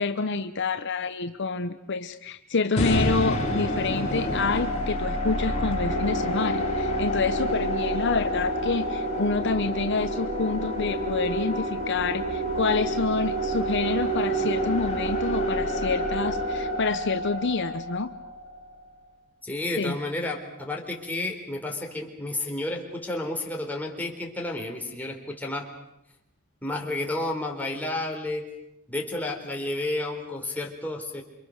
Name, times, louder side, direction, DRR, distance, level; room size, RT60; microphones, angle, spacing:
voice 1, 0.0-18.1 19.8-19.9, left 4 dB, 60° left, 9 dB, 0.9 m, -28 dB
sound 1, 2.8-18.9, left 1 dB, 30° left, 3.8 m, -30 dB
sound 2, 5.9-16.8, right 4 dB, 40° right, 3.2 m, -32 dB
voice 2, 19.4-25.7 26.6-28.4 28.9-31.2, left 2 dB, 10° left, 0 dB, 3.9 m, -31 dB
28.0 x 24.5 x 6.5 m, 0.86 s
head